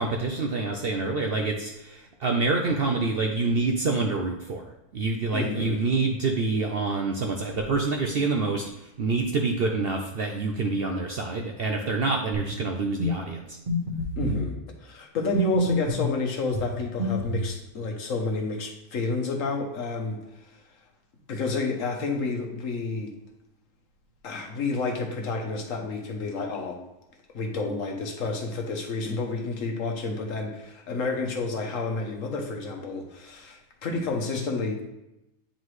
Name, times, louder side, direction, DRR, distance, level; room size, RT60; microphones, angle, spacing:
voice 1, 0.0-4.6 4.9-8.6 9.0-13.4, right 3 dB, 60° right, 2 dB, 0.6 m, -26 dB
voice 2, 5.3-5.8 14.2-20.5 21.3-23.1 24.2-26.8 27.3-34.8, left 3 dB, 60° left, 2 dB, 1.3 m, -30 dB
sound 1, 12.3-12.6 13.0-13.2 13.7-14.4 15.3-16.1 16.5-17.5, equal, 35° right, 1.4 m, -27 dB
9.2 x 3.9 x 3.2 m, 0.91 s
omnidirectional pair, 1.6 m